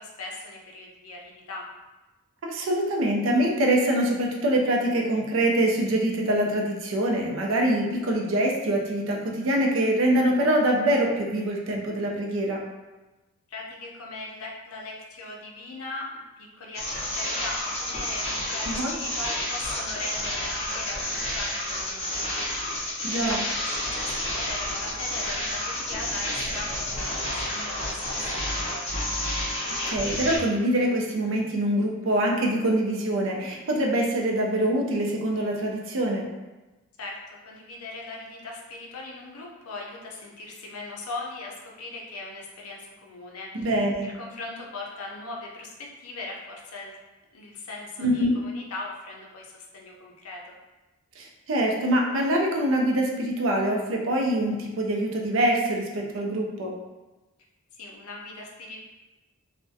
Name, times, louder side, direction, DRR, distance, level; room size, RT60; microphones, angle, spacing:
voice 1, 0.0-1.7 13.5-28.9 37.0-43.7 44.0-47.0 47.3-50.5 57.7-58.8, left 2 dB, 80° left, -1 dB, 0.5 m, -39 dB
voice 2, 2.4-12.6 18.7-18.9 23.0-23.4 29.9-36.3 43.5-44.1 48.0-48.4 51.2-56.7, right 1 dB, 60° right, 0 dB, 0.4 m, -24 dB
sound 1, 16.7-30.4, left 1 dB, 30° left, 0.5 m, -30 dB
2.4 x 2.1 x 2.5 m, 1.1 s
head